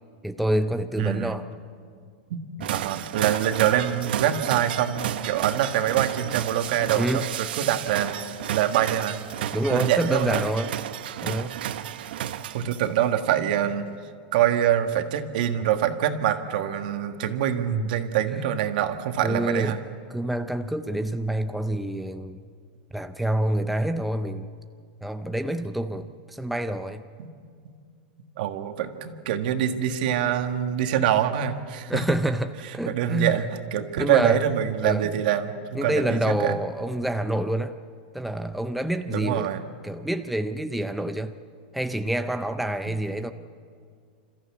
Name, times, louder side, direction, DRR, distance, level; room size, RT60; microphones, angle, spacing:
voice 1, 0.2-1.5 2.6-2.7 6.9-7.3 9.5-10.7 11.2-11.6 17.7-17.9 19.2-19.8 20.1-22.4 22.9-24.5 25.0-27.0 31.9-33.5 34.0-34.4 34.8-35.1 35.7-37.7 38.1-39.5 39.8-41.3 41.7-43.3, right 1 dB, ahead, 7 dB, 0.5 m, -27 dB
voice 2, 1.0-1.4 2.3-2.4 2.7-9.2 9.7-10.4 12.5-13.9 14.3-19.8 27.2-27.3 27.6-27.7 28.4-32.0 32.9-36.6 39.1-39.7, right 10 dB, 60° right, 7 dB, 1.6 m, -25 dB
sound 1, 2.6-13.0, right 11 dB, 80° right, 0.8 m, -32 dB
27.0 x 14.5 x 8.5 m, 2.2 s
supercardioid pair, 160°, 5 cm